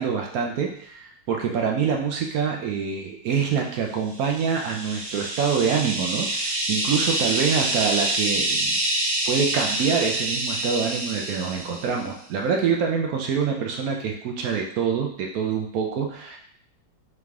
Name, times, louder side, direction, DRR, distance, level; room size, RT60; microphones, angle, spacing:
voice 1, 0.0-8.8 9.3-16.4, right 6 dB, 75° right, 1 dB, 0.8 m, -25 dB
sound 1, 4.2-12.0, right 1 dB, 90° right, 1.7 m, -27 dB
3.7 x 3.2 x 3.4 m, 0.62 s
omnidirectional pair, 2.0 m